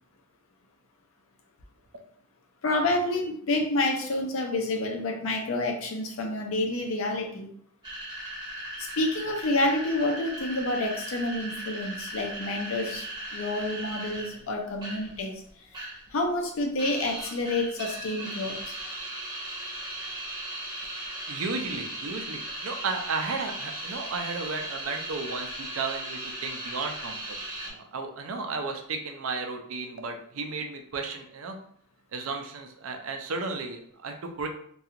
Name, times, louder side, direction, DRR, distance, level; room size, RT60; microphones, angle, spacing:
voice 1, 2.6-7.5 8.8-15.4 16.1-18.8, left 2 dB, 70° left, 2 dB, 0.5 m, -28 dB
sound 1, 7.8-15.2 15.5-16.1 16.4-27.7, right 1 dB, 20° right, 0.7 m, -38 dB
voice 2, 21.3-27.4 27.6-31.6 32.1-34.5, right 4 dB, 75° right, 4 dB, 0.4 m, -34 dB
2.4 x 2.3 x 2.8 m, 0.62 s
head